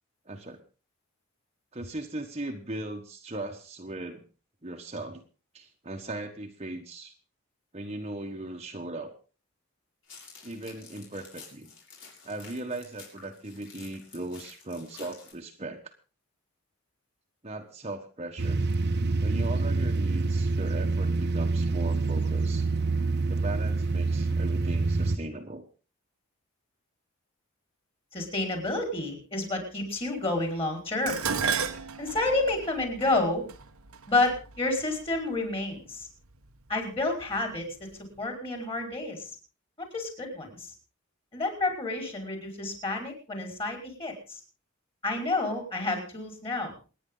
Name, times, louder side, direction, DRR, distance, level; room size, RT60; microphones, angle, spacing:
voice 1, 0.2-0.6 1.7-4.3 4.6-5.2 5.5-7.1 7.7-9.2 10.4-11.7 12.2-15.9 17.4-18.6 19.2-22.7 23.3-25.6, right 2 dB, 30° right, 3 dB, 1.4 m, -38 dB
sound 1, 10.0-15.3, left 5 dB, 60° left, 7.6 m, -50 dB
sound 2, 18.4-25.2, right 3 dB, 50° right, 1.2 m, -26 dB
voice 2, 28.1-31.2 32.0-33.5 34.1-36.1 36.7-37.7 38.2-39.4 39.8-40.7 41.3-44.4 45.0-46.7, left 2 dB, 25° left, 3 dB, 5.2 m, -29 dB
Dishes pots and pans, 31.1-35.4 36.3-36.7 37.1-37.9 38.2-38.3, right 5 dB, 90° right, 1.3 m, -34 dB
28.0 x 9.9 x 3.9 m, 0.34 s
head